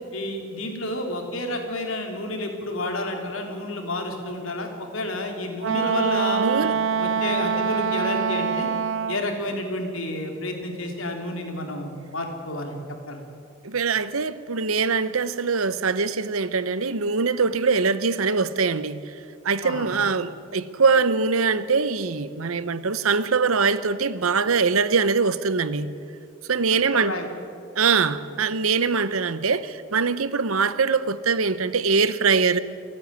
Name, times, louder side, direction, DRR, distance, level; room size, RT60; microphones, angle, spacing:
voice 1, 0.1-8.7 9.1-12.8 13.1-13.2 19.6-19.9 26.9-27.3, left 1 dB, 70° left, 3.3 m, -30 dB
Wind instrument woodwind instrument, 5.6-9.3, right 6 dB, 60° right, 0.6 m, -24 dB
voice 2, 6.4-6.7 13.6-19.1 19.4-25.9 26.5-27.2 27.8-32.6, right 5 dB, 80° right, 0.9 m, -23 dB
29.0 x 9.8 x 9.7 m
head